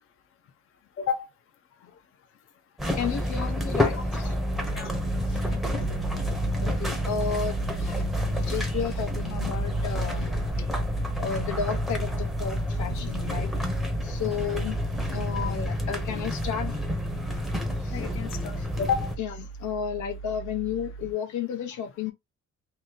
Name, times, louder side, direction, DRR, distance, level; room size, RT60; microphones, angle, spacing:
sound 1, 2.8-19.2, left 1 dB, ahead, 0.7 m, -29 dB
voice 1, 2.9-4.0 4.2-4.3 5.3-5.4 6.3-7.9 8.3-10.3 10.6-10.7 11.2-13.5 14.0-14.8 15.1-16.9 17.8-18.0 18.6-18.7 19.2-19.3 19.6-22.1, left 7 dB, 85° left, 0.8 m, -32 dB
voice 2, 3.9-4.3 4.7-4.9 5.3-6.0 14.4-14.6 17.9-19.1, left 6 dB, 45° left, 0.6 m, -32 dB
sound 2, 4.5-21.1, right 6 dB, 85° right, 0.5 m, -38 dB
2.9 x 2.5 x 3.8 m
cardioid pair, 150°, 29 cm